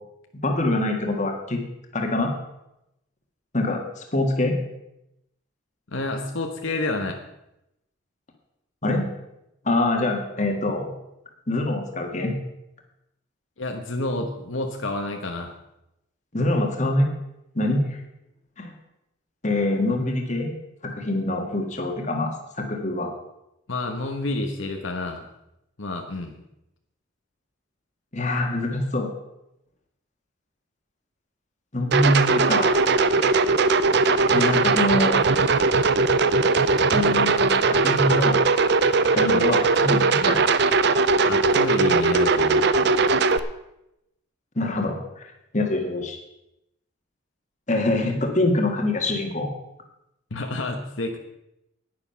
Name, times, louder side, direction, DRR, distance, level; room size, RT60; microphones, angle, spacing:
voice 1, 0.4-1.6 1.9-2.3 3.5-4.6 8.8-9.1 9.6-10.9 11.5-12.3 16.3-17.1 17.5-18.0 18.6-18.7 19.4-20.5 20.8-23.1 28.1-29.1 31.7-32.7 34.3-35.2 36.9-38.4 39.1-40.5 44.5-45.3 45.5-46.2 47.7-49.5, left 1 dB, 35° left, 3 dB, 1.7 m, -24 dB
voice 2, 5.9-7.2 13.6-15.5 23.7-25.2 25.8-26.3 39.2-39.5 41.2-42.7 50.3-51.2, left 2 dB, 70° left, 4 dB, 1.2 m, -29 dB
sound 1, 31.9-43.4, right 4 dB, 55° right, 0.6 m, -19 dB
10.5 x 9.8 x 5.7 m, 0.86 s
head